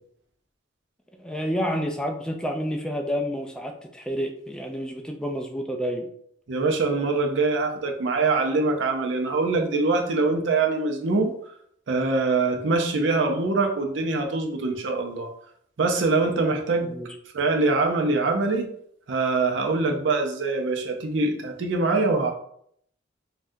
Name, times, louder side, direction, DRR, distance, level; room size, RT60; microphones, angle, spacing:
voice 1, 1.2-6.1 16.8-17.1, equal, 5° left, 3 dB, 0.3 m, -29 dB
voice 2, 6.5-11.3 11.9-15.3 15.8-16.9 17.3-18.7 19.1-22.3, right 3 dB, 70° right, 3 dB, 0.5 m, -23 dB
3.5 x 2.2 x 2.6 m, 0.67 s
head